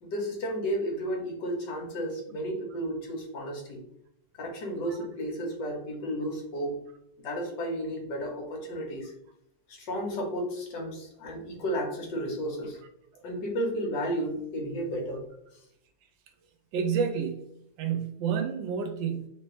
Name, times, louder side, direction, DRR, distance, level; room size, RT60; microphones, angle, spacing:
voice 1, 0.0-3.8 4.4-6.8 7.2-9.1 9.7-12.8 13.2-15.3, equal, 65° left, 1 dB, 1.6 m, -33 dB
voice 2, 16.7-17.5 17.8-19.3, right 6 dB, 75° right, 6 dB, 1.2 m, -29 dB
4.1 x 2.9 x 3.0 m, 0.76 s
omnidirectional pair, 2.1 m